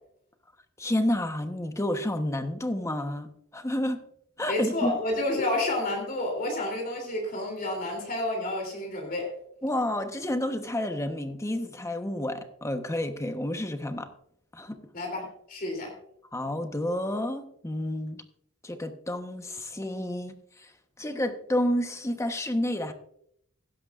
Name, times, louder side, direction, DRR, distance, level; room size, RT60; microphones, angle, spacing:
voice 1, 0.8-4.0 4.4-5.0 5.4-5.5 9.6-14.1 14.5-14.9 16.3-18.2 18.6-20.7 21.0-22.9, left 1 dB, 15° left, 7 dB, 1.0 m, -30 dB
voice 2, 4.5-9.3 14.9-15.9, left 1 dB, 45° left, 2 dB, 3.1 m, -30 dB
16.0 x 11.5 x 2.5 m, 0.72 s
head